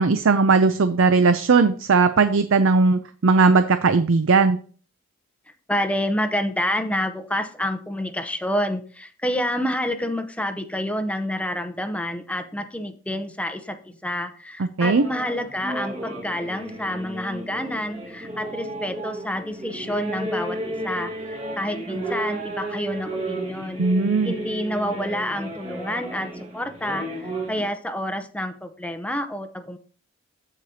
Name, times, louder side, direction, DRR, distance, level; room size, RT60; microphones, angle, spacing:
voice 1, 0.0-4.6 14.6-15.0 23.8-24.3, right 4 dB, 60° right, 10 dB, 0.5 m, -18 dB
voice 2, 5.7-23.8 24.2-29.8, left 1 dB, 5° left, 9 dB, 0.6 m, -28 dB
sound 1, 14.8-27.7, right 1 dB, 30° right, 1.7 m, -33 dB
14.5 x 4.9 x 2.8 m, 0.42 s
head